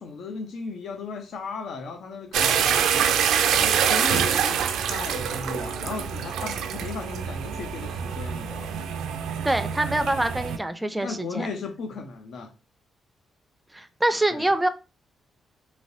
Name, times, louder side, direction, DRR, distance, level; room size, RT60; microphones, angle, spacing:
voice 1, 0.0-3.2 3.6-4.6 4.9-8.8 11.0-12.5 14.3-14.5, left 4 dB, 70° left, 0.6 m, -36 dB
sound 1, 2.3-10.6, right 8 dB, 85° right, 0.3 m, -25 dB
voice 2, 9.4-11.5 13.7-14.7, right 1 dB, 10° right, 0.4 m, -25 dB
3.1 x 2.9 x 2.6 m
cardioid pair, 75°, 0 cm